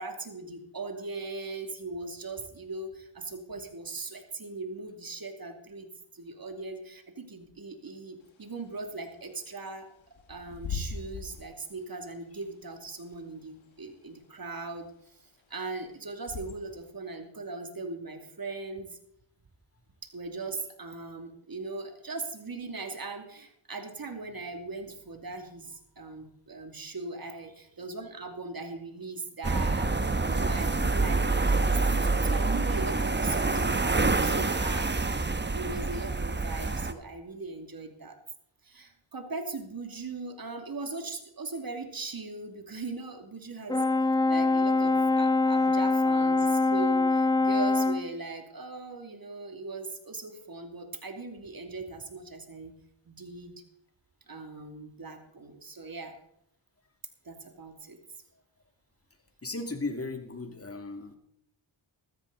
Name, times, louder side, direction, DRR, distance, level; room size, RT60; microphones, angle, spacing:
voice 1, 0.0-5.9 6.1-9.9 10.3-19.0 20.1-29.9 30.3-38.2 38.6-43.8 44.3-52.7 53.0-53.5 54.3-56.1 57.2-58.0, right 3 dB, 50° right, 5 dB, 2.8 m, -39 dB
Bird / Wind, 8.2-16.9, left 5 dB, 85° left, 2.2 m, -43 dB
sound 1, 29.4-36.9, right 3 dB, 25° right, 1.2 m, -27 dB
Brass instrument, 43.7-48.1, left 3 dB, 10° left, 0.7 m, -24 dB
voice 2, 59.4-61.2, left 3 dB, 30° left, 5 dB, 2.8 m, -36 dB
14.0 x 14.0 x 4.0 m, 0.74 s
cardioid pair, 50°, 46 cm